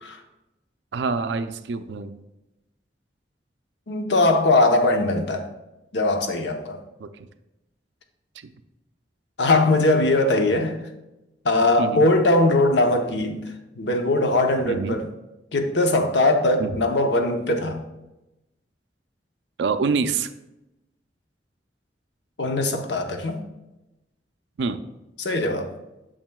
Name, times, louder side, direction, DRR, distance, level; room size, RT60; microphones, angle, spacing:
voice 1, 0.9-2.2 7.0-7.1 8.4-8.5 11.8-12.1 14.7-15.0 16.6-16.8 19.6-20.3 24.6-24.8, right 4 dB, 90° right, 11 dB, 0.4 m, -26 dB
voice 2, 3.9-5.4 5.9-6.8 9.4-10.8 11.4-13.4 13.8-15.1 15.5-17.8 22.4-23.4 25.2-25.7, left 2 dB, 80° left, 5 dB, 0.8 m, -20 dB
8.8 x 6.5 x 2.3 m, 0.96 s
head